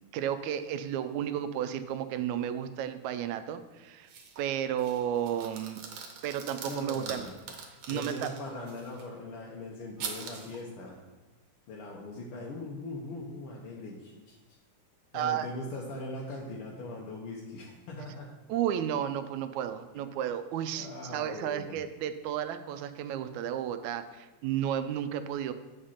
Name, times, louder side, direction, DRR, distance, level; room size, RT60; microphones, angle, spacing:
voice 1, 0.1-4.1 4.4-5.8 6.2-7.3 7.9-8.3 15.1-15.5 18.5-25.5, right 10 dB, 80° right, 10 dB, 1.9 m, -32 dB
sound 1, 4.1-4.5 4.8-9.0 10.0-10.6, right 5 dB, 65° right, 1.8 m, -43 dB
voice 2, 6.7-7.3 7.9-11.0 11.7-14.4 15.1-18.3 19.9-20.2 20.7-21.8, left 2 dB, 65° left, -2 dB, 1.4 m, -40 dB
8.0 x 5.1 x 5.6 m, 1.2 s
omnidirectional pair, 3.3 m